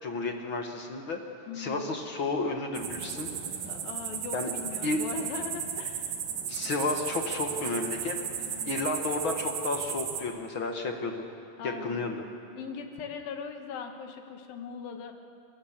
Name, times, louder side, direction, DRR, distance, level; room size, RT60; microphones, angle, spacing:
voice 1, 0.0-1.2 1.5-3.3 4.3-4.5 4.8-5.0 6.5-8.2 8.7-11.2 11.6-12.2, left 3 dB, 50° left, 3 dB, 1.6 m, -32 dB
voice 2, 1.5-2.0 3.7-6.2 8.4-8.9 11.6-12.2 12.6-15.1, left 6 dB, 85° left, 5 dB, 3.3 m, -40 dB
sound 1, 2.7-10.2, right 8 dB, 75° right, 3.2 m, -35 dB
25.0 x 23.0 x 7.4 m, 2.6 s
omnidirectional pair, 4.0 m